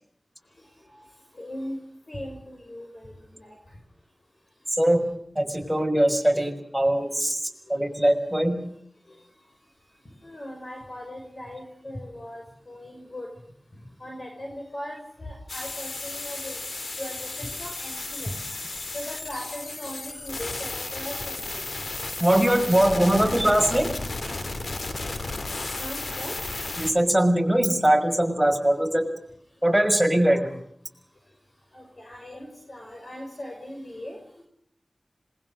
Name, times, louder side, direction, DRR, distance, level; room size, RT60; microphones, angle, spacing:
voice 1, 1.4-1.8 2.1-3.5 10.2-13.3 14.0-16.6 17.0-18.3 18.9-21.6 22.8-23.4 25.8-26.4 29.7-29.8 30.3-30.4 31.7-34.4, left 1 dB, 55° left, 1 dB, 5.6 m, -38 dB
voice 2, 5.4-8.6 22.2-23.9 26.8-29.1 29.6-30.6, right 1 dB, 5° right, 3 dB, 5.8 m, -21 dB
sound 1, 15.5-26.9, left 2 dB, 85° left, 2.8 m, -34 dB
26.5 x 21.0 x 6.6 m, 0.68 s
wide cardioid pair, 45°, 0 cm